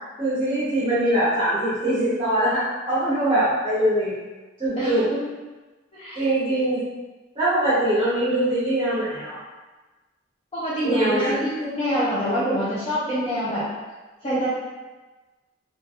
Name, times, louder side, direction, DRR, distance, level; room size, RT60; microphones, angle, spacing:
voice 1, 0.2-4.2 4.6-5.1 6.2-6.8 7.4-9.4 10.8-11.4 11.9-12.1, right 1 dB, 30° right, -11 dB, 0.8 m, -22 dB
voice 2, 4.7-5.3 5.9-6.2 10.5-13.6 14.2-14.5, equal, 30° left, -12 dB, 0.6 m, -25 dB
3.2 x 2.3 x 2.4 m, 1.2 s
head